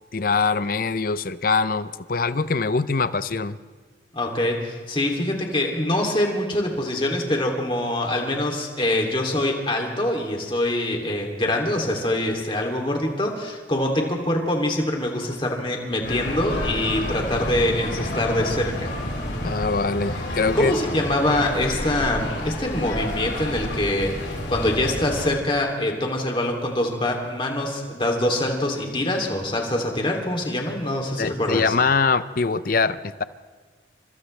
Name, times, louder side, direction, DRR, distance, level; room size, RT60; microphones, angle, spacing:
voice 1, 0.1-3.6 19.4-20.7 31.2-33.2, left 4 dB, 50° left, 14 dB, 0.6 m, -23 dB
voice 2, 4.1-18.9 20.5-24.1 24.5-31.7, left 1 dB, 30° left, 1 dB, 2.8 m, -24 dB
sound 1, 16.0-25.3, left 1 dB, 75° left, 4.3 m, -29 dB
29.5 x 26.0 x 3.3 m, 1.4 s
head